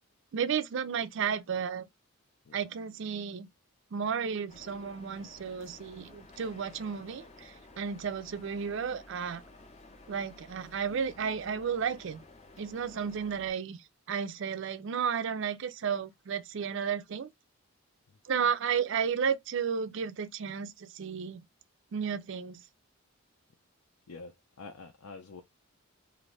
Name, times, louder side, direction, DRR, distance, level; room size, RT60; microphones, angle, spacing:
voice 1, 0.3-1.9 2.5-3.5 3.9-9.4 10.1-12.2 12.6-17.3 18.2-21.4 21.9-22.6, right 7 dB, 55° right, 0.4 m, -33 dB
sound 1, 4.5-13.5, left 2 dB, 30° left, 0.5 m, -54 dB
voice 2, 24.1-25.4, left 4 dB, 75° left, 0.6 m, -47 dB
2.6 x 2.5 x 3.1 m
head